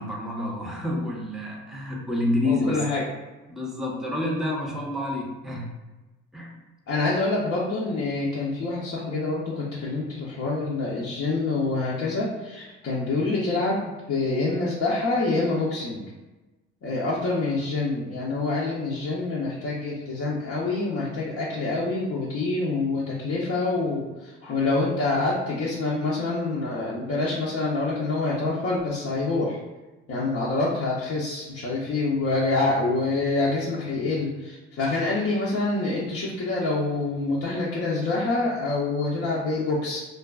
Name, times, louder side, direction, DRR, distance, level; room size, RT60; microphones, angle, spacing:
voice 1, 0.0-2.8 3.5-5.7 6.3-6.5, left 1 dB, ahead, -2 dB, 0.6 m, -28 dB
voice 2, 2.4-3.0 6.9-16.0 16.8-29.6 30.1-40.0, left 3 dB, 45° left, -6 dB, 0.6 m, -26 dB
2.4 x 2.2 x 2.3 m, 1.1 s
hypercardioid pair, 60°, 31 cm